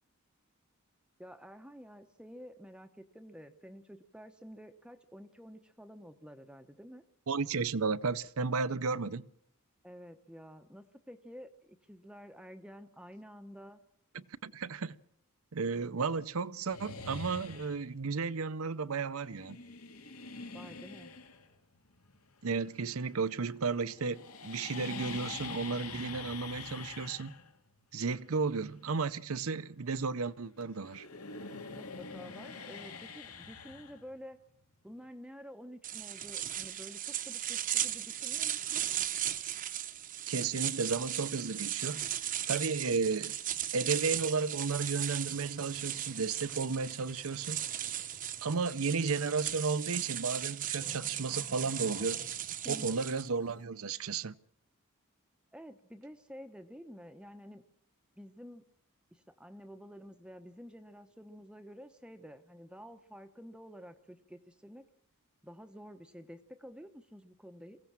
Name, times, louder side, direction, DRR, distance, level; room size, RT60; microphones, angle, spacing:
voice 1, 1.2-7.0 9.8-13.8 20.5-21.1 31.7-34.4 34.8-38.9 52.6-52.9 55.5-57.7 58.2-58.6 59.1-64.9 65.4-67.8, equal, 5° right, 0.8 m, -50 dB
voice 2, 7.3-9.3 14.1-14.9 15.5-19.6 22.4-27.3 27.9-31.1 40.3-42.0 42.5-43.3 43.7-47.6 48.4-52.2 52.6-54.3, right 4 dB, 70° right, 0.7 m, -33 dB
sound 1, 16.7-18.0 19.2-23.5 23.7-30.4 30.6-34.5, left 4 dB, 80° left, 2.4 m, -46 dB
sound 2, 35.8-53.3, right 11 dB, 35° right, 0.8 m, -37 dB
sound 3, 45.1-49.3 49.5-50.0 50.3-53.6, left 3 dB, 35° left, 0.9 m, -54 dB
23.0 x 16.5 x 7.4 m
head